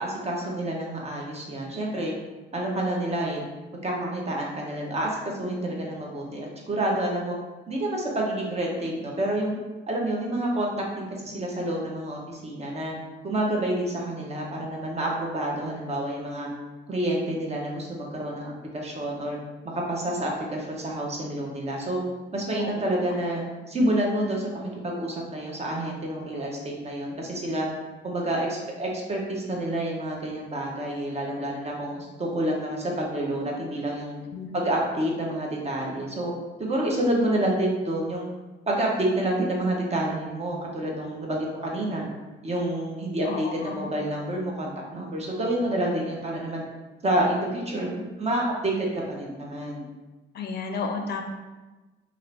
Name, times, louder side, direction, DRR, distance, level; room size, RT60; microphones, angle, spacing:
voice 1, 0.0-2.1 2.5-3.4 3.8-7.4 7.7-9.5 9.9-12.9 13.2-16.5 16.9-19.4 19.9-22.0 22.3-27.7 28.0-34.2 34.5-36.3 36.6-38.3 38.7-42.1 42.4-46.6 47.0-49.8, right 1 dB, 30° right, -1 dB, 0.7 m, -28 dB
voice 2, 43.3-43.7 50.3-51.2, left 4 dB, 55° left, 3 dB, 0.4 m, -32 dB
2.7 x 2.5 x 3.2 m, 1.2 s
cardioid pair, 90°, 20 cm